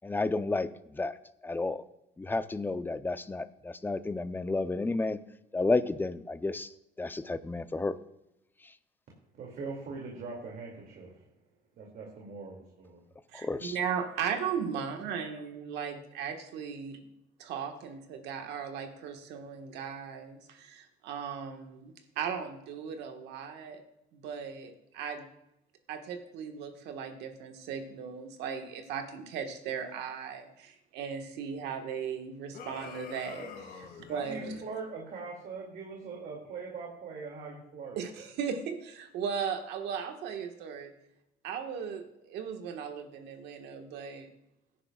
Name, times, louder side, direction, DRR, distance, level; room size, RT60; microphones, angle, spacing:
voice 1, 0.0-1.2 1.4-1.8 2.2-5.2 5.5-6.7 7.0-8.0 8.6-8.7 13.3-13.8, left 3 dB, 10° left, 12 dB, 0.5 m, -31 dB
voice 2, 9.3-11.2 11.7-13.1 34.1-38.0, right 4 dB, 60° right, -2 dB, 2.4 m, -41 dB
voice 3, 13.3-17.0 17.4-23.8 24.1-25.3 25.9-34.6 37.9-40.9 41.4-44.3, right 7 dB, 85° right, 5 dB, 1.5 m, -37 dB
sound 1, 32.5-34.7, left 5 dB, 65° left, 2.1 m, -46 dB
17.0 x 10.0 x 2.3 m, 0.86 s
cardioid pair, 110°, 17 cm